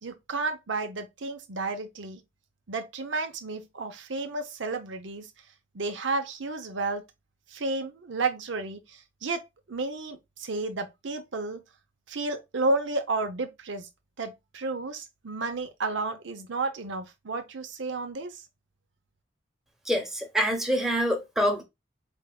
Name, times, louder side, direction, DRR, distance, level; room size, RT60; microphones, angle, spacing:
voice 1, 0.0-2.2 2.7-5.3 5.7-7.0 7.5-11.6 12.1-13.9 14.2-18.4, right 3 dB, 80° right, 0.7 m, -32 dB
voice 2, 19.9-21.6, equal, ahead, 0.9 m, -26 dB
4.6 x 3.4 x 2.3 m
head